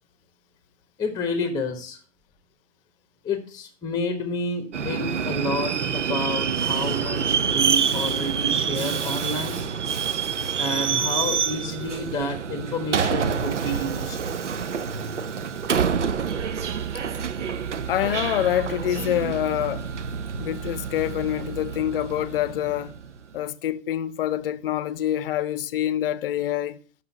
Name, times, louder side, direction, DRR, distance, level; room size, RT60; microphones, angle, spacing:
voice 1, 1.0-2.0 3.2-9.6 10.5-14.2, left 1 dB, 10° left, 1.1 m, -29 dB
Subway metro underground, 4.7-23.2, right 7 dB, 90° right, 0.7 m, -27 dB
voice 2, 17.9-19.9 20.4-22.9 23.3-26.8, left 12 dB, 55° left, 0.7 m, -26 dB
6.3 x 5.6 x 5.8 m
figure-of-eight pair, 115°, 35 cm